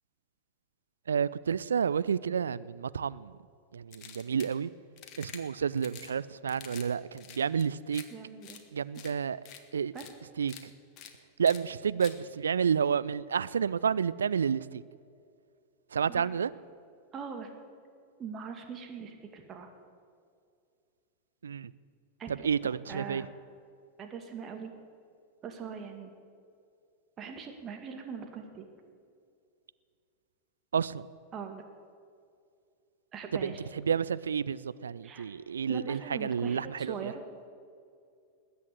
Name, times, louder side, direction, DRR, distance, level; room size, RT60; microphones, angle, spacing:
voice 1, 1.1-3.3 3.7-4.7 5.2-8.0 8.7-9.4 9.7-9.9 10.4-10.5 11.4-14.8 15.9-16.5 21.4-21.7 22.4-23.2 30.7-31.1 33.4-33.5 33.9-37.1, right 7 dB, 70° right, 0.4 m, -30 dB
sound 1, 3.9-4.5 5.0-5.4 5.8-6.1 6.5-6.9 7.1-8.0 8.4-8.6 8.9-9.1 9.4-9.6 9.9-10.1 10.4-10.6 11.0-11.1 11.5-11.6 12.0-12.1, left 9 dB, 40° left, 1.6 m, -47 dB
voice 2, 8.1-8.6 9.9-10.1 16.1-16.3 17.1-17.5 18.2-19.7 22.2-22.3 22.7-23.3 24.0-24.7 25.4-26.1 27.2-28.7 31.3-31.6 33.1-33.6 35.0-35.3 35.7-37.2, right 6 dB, 25° right, 2.2 m, -41 dB
20.5 x 8.4 x 8.0 m
figure-of-eight pair, 90°, 0 cm